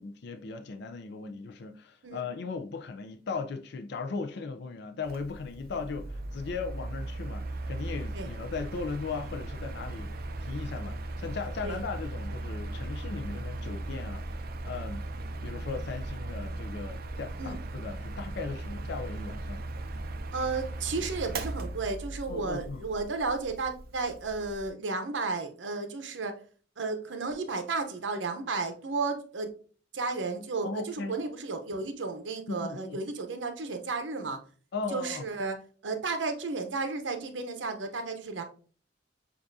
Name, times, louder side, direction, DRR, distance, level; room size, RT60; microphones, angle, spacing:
voice 1, 0.0-14.2 14.6-15.0 15.4-19.6 22.3-22.9 30.6-31.2 32.5-33.0 34.7-35.3, left 4 dB, 65° left, 0.4 m, -37 dB
Mechanical fan, 5.0-24.7, right 2 dB, 55° right, 0.5 m, -38 dB
voice 2, 20.3-26.3 26.8-29.5 29.9-34.4 34.9-35.5 35.8-38.4, right 3 dB, 85° right, 0.8 m, -33 dB
7.0 x 2.5 x 2.6 m
head